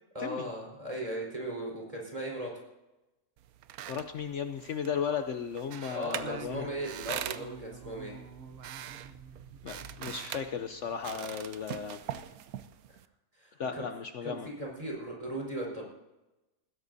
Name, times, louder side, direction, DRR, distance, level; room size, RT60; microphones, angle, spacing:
voice 1, 0.1-2.6 5.9-8.1 13.3-13.8 14.2-15.8, right 1 dB, 25° right, -2 dB, 4.7 m, -37 dB
sound 1, 3.4-13.1, right 10 dB, 80° right, 1.1 m, -43 dB
voice 2, 3.9-6.7 9.6-12.0 13.6-14.5, left 7 dB, 60° left, 7 dB, 1.0 m, -35 dB
Singing, 6.2-10.9, right 6 dB, 50° right, 0.9 m, -48 dB
20.5 x 16.0 x 2.7 m, 1.0 s
omnidirectional pair, 1.5 m